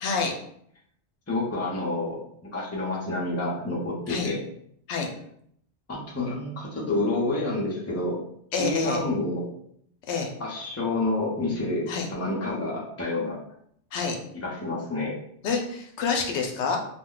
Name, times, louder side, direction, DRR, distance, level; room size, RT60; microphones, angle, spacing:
voice 1, 0.0-0.3 4.1-4.3 4.9-5.1 8.5-9.0 10.1-10.3 11.9-12.1 13.9-14.2 15.4-16.8, left 5 dB, 80° left, 3 dB, 0.9 m, -27 dB
voice 2, 1.3-4.4 5.9-8.2 8.6-9.4 10.4-13.4 14.4-15.2, left 2 dB, 15° left, -4 dB, 0.5 m, -28 dB
2.3 x 2.1 x 3.7 m, 0.68 s
omnidirectional pair, 1.2 m